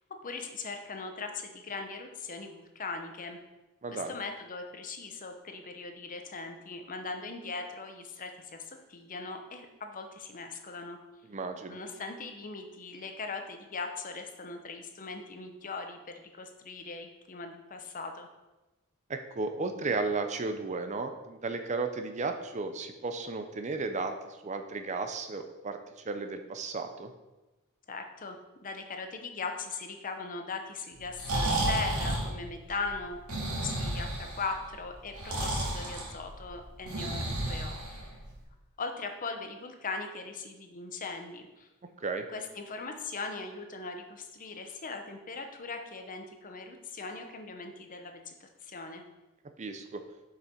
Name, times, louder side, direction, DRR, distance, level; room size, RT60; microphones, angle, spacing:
voice 1, 0.2-3.4 3.9-11.0 11.7-18.3 27.9-28.4 28.6-38.0 38.8-41.7 42.3-49.0, left 4 dB, 35° left, 5 dB, 0.8 m, -39 dB
voice 2, 3.8-4.1 11.3-11.8 19.1-27.1 42.0-42.2 49.6-50.0, right 3 dB, 30° right, 7 dB, 0.5 m, -34 dB
Breathing, 31.0-38.4, right 1 dB, 75° right, 2.1 m, -33 dB
6.7 x 5.6 x 4.4 m, 1.1 s
head